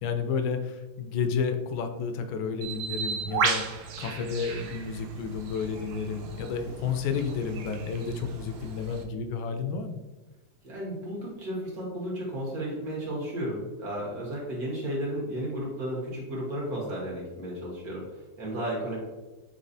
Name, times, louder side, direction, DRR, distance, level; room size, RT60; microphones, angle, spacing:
voice 1, 0.0-10.0, left 5 dB, 80° left, 7 dB, 1.3 m, -31 dB
Bird, 2.6-9.0, right 5 dB, 85° right, 1.5 m, -34 dB
voice 2, 10.6-19.0, right 1 dB, 50° right, -4 dB, 1.5 m, -33 dB
4.1 x 4.0 x 2.6 m, 1.2 s
omnidirectional pair, 2.2 m